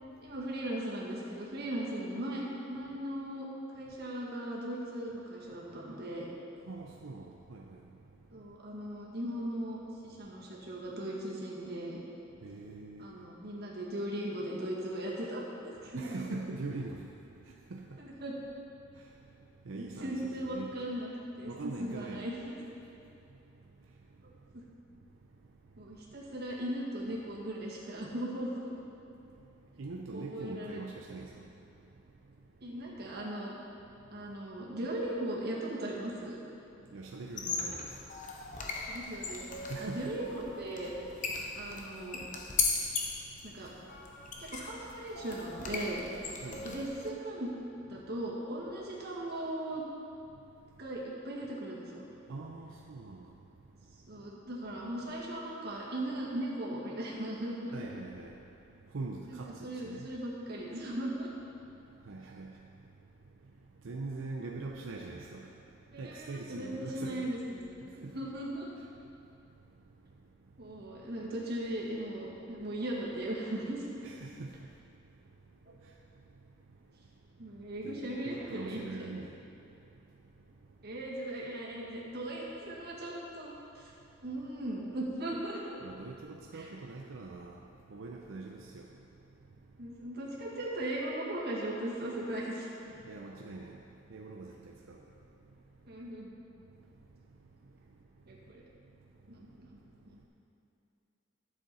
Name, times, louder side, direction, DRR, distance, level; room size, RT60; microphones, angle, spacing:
voice 1, 0.2-3.5 3.7-6.3 8.3-12.0 13.0-16.3 18.0-18.4 19.8-21.1 21.4-22.5 24.2-24.3 25.8-28.8 30.1-30.8 32.6-33.6 34.1-36.4 38.9-39.5 39.8-40.9 41.5-42.2 43.4-43.7 44.4-46.0 46.6-47.5 47.9-49.8 50.8-52.0 54.1-57.8 59.3-61.3 65.9-68.7 70.6-73.8 75.7-75.8 77.4-79.1 80.8-83.9 84.2-85.8 86.5-86.7 89.8-93.0 95.9-96.3 98.3-98.6 99.3-99.8 100.1-100.3, right 1 dB, 55° right, -4 dB, 1.8 m, -38 dB
voice 2, 6.7-8.6 12.4-13.2 15.9-18.1 18.9-20.8 21.5-22.3 23.1-24.4 25.1-25.8 29.3-32.4 34.0-34.3 36.9-38.8 39.7-40.1 41.4-41.7 42.9-43.5 44.2-44.5 46.4-46.8 50.3-50.7 52.3-53.5 53.8-54.3 57.7-58.5 58.8-60.1 61.8-67.3 67.8-68.2 69.1-70.8 74.0-74.8 75.1-77.0 77.3-80.9 85.8-90.0 93.0-95.9 96.7-97.4 97.6-98.5 99.3-100.3, right 3 dB, 85° right, 0 dB, 0.6 m, -45 dB
sound 1, 37.3-47.1, left 4 dB, 40° left, 0.8 m, -38 dB
12.0 x 7.1 x 4.2 m, 2.8 s
head